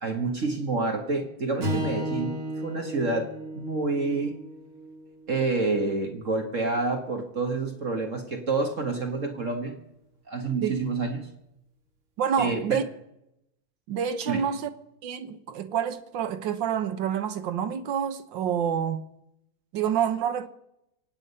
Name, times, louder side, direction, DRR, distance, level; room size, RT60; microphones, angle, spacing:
voice 1, 0.0-4.4 5.3-9.8 10.3-11.3 12.4-12.8 14.3-14.4, right 3 dB, 40° right, 1.7 m, -28 dB
Strum, 1.6-5.9, equal, 85° right, 4.0 m, -34 dB
voice 2, 12.2-12.9 13.9-14.7 15.0-19.1 19.7-20.5, right 8 dB, 65° right, 1.7 m, -28 dB
24.5 x 9.1 x 5.6 m
omnidirectional pair, 2.3 m